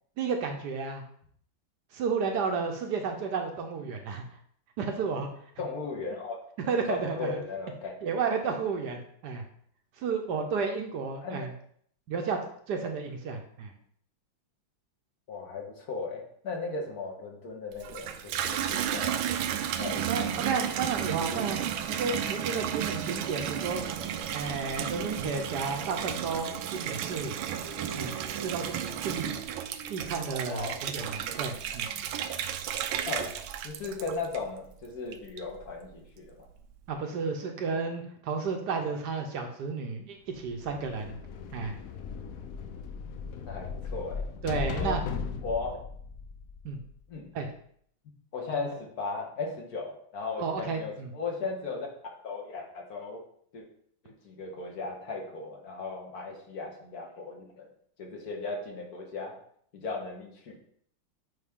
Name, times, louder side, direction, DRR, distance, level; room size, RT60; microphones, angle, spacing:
voice 1, 0.2-1.0 1.9-4.2 4.8-5.3 6.7-7.4 8.0-9.4 10.0-11.5 12.1-12.4 12.7-13.7 20.1-21.6 21.9-23.8 24.3-27.3 27.9-28.1 28.4-28.7 29.0-29.3 29.9-31.9 36.9-41.2 41.5-41.7 44.4-45.0 46.6-46.8 47.3-47.5 50.4-51.1, right 5 dB, 65° right, 4 dB, 1.2 m, -32 dB
voice 2, 5.6-6.4 6.9-7.9 11.2-11.5 15.3-19.1 19.8-20.6 21.2-21.4 30.4-31.1 33.0-33.4 33.6-36.5 43.4-44.2 44.7-45.0 45.4-45.8 47.1-47.3 48.3-51.9 52.2-53.2 53.5-53.6 54.0-57.7 58.0-59.3 59.7-60.5, left 4 dB, 55° left, 0 dB, 1.6 m, -37 dB
Water tap faucet / Bathtub (filling or washing), 17.7-34.7 35.1-35.7, right 9 dB, 90° right, 1.4 m, -33 dB
sound 1, 21.2-32.8, right 2 dB, 25° right, 0.7 m, -49 dB
sound 2, 40.4-47.1, left 5 dB, 75° left, 0.8 m, -37 dB
9.1 x 3.2 x 3.6 m, 0.63 s
omnidirectional pair, 2.1 m